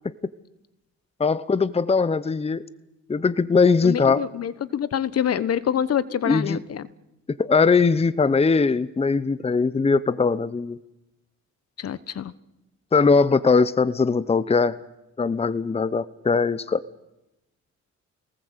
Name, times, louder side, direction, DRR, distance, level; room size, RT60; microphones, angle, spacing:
voice 1, 1.2-2.6 3.1-4.2 6.3-6.6 7.4-10.8 12.9-14.8 15.2-16.8, left 4 dB, 20° left, 17 dB, 0.8 m, -20 dB
voice 2, 3.8-6.9 11.8-12.3, left 9 dB, 55° left, 17 dB, 1.2 m, -26 dB
26.5 x 19.0 x 8.2 m, 0.93 s
cardioid pair, 90°, 30 cm